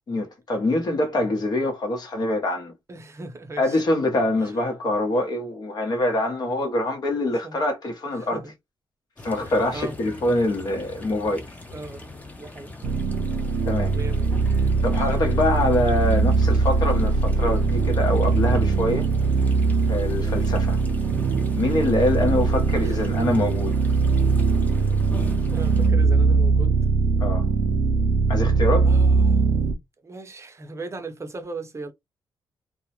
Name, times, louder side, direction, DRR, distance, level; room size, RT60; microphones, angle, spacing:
voice 1, 0.1-2.7 3.6-8.4 9.2-11.4 13.7-13.9 14.8-19.0 19.9-20.8 21.5-23.8 27.2-27.4 28.3-28.9, left 1 dB, 55° left, 0.9 m, -24 dB
voice 2, 2.9-3.8 4.4-4.6 5.9-6.0 7.1-7.7 8.1-8.5 9.4-10.0 11.7-12.7 13.9-14.3 15.0-15.1 20.1-20.7 22.8-23.1 24.8-24.9 25.5-26.8 28.8-29.4 30.0-31.9, right 3 dB, 35° right, 0.6 m, -38 dB
sound 1, 9.2-25.9, left 2 dB, 20° left, 0.7 m, -40 dB
sound 2, 12.8-29.7, right 4 dB, 80° right, 0.4 m, -21 dB
2.2 x 2.0 x 2.8 m
cardioid pair, 80°, 8 cm